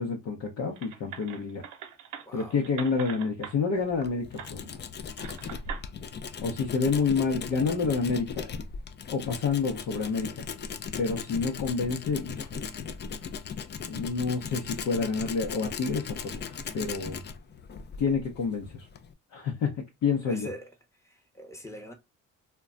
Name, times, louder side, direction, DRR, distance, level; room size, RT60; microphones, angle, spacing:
voice 1, 0.0-1.7 2.3-4.8 6.4-8.5 9.1-10.4 11.0-12.7 13.8-17.2 18.0-18.9 19.3-20.5, left 5 dB, 70° left, 0.8 m, -29 dB
sound 1, 0.8-3.5 4.4-4.5 5.2-5.8, right 8 dB, 85° right, 0.7 m, -42 dB
voice 2, 2.2-2.6 20.2-20.7 21.0-21.9, equal, 10° left, 0.8 m, -42 dB
Tools, 3.8-19.1, left 6 dB, 35° left, 0.4 m, -38 dB
2.2 x 2.2 x 3.7 m
cardioid pair, 90°, 30 cm